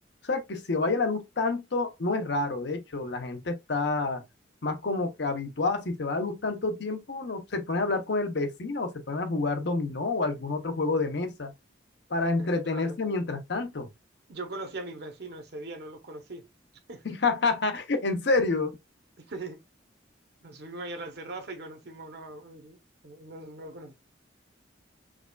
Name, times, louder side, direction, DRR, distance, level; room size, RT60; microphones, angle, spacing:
voice 1, 0.2-4.2 4.6-11.5 12.1-13.9 17.0-18.8, left 3 dB, 60° left, 0.7 m, -28 dB
voice 2, 12.4-13.0 14.3-16.4 16.9-17.0 19.3-19.6 20.4-23.9, right 2 dB, 55° right, 0.8 m, -40 dB
4.7 x 2.3 x 2.2 m
head